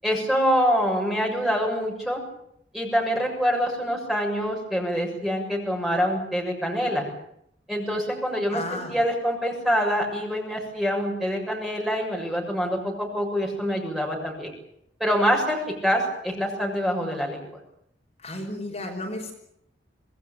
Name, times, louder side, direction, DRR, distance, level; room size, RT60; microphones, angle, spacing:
voice 1, 0.0-2.2 2.7-7.1 7.7-14.5 15.0-17.5, equal, ahead, -1 dB, 7.0 m, -25 dB
voice 2, 8.5-9.0 18.2-19.3, left 1 dB, 35° left, 1 dB, 5.3 m, -33 dB
26.5 x 20.0 x 8.9 m, 0.72 s
head